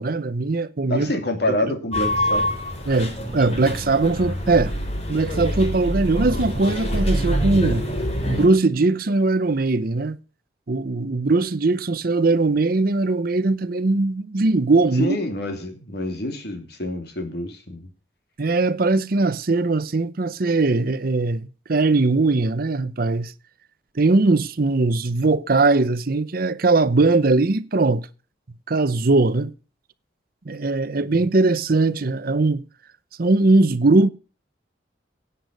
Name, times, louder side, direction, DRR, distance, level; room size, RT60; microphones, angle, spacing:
voice 1, 0.0-1.1 1.5-1.8 2.9-4.7 5.1-7.8 8.3-10.2 10.7-15.2 18.4-23.3 23.9-28.1 28.7-29.5 30.5-32.6 33.2-34.1, right 3 dB, 50° right, 0.7 m, -20 dB
voice 2, 0.9-2.5 15.0-17.9, left 1 dB, 60° left, 2.8 m, -27 dB
sound 1, 1.9-8.5, equal, 35° left, 3.3 m, -25 dB
17.0 x 8.2 x 5.2 m
head